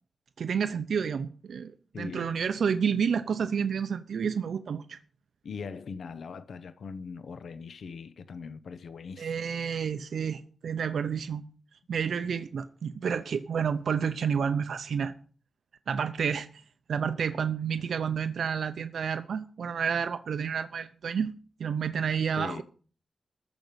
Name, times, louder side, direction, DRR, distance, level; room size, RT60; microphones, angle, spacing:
voice 1, 0.4-1.7 2.0-5.0 9.2-11.4 11.9-15.1 15.9-16.5 16.9-21.3 21.6-22.6, right 7 dB, 85° right, 0.6 m, -30 dB
voice 2, 1.9-2.4 5.4-9.4 17.8-17.9 22.3-22.6, left 5 dB, 80° left, 0.9 m, -41 dB
14.0 x 5.2 x 9.0 m
wide cardioid pair, 105°, 0 cm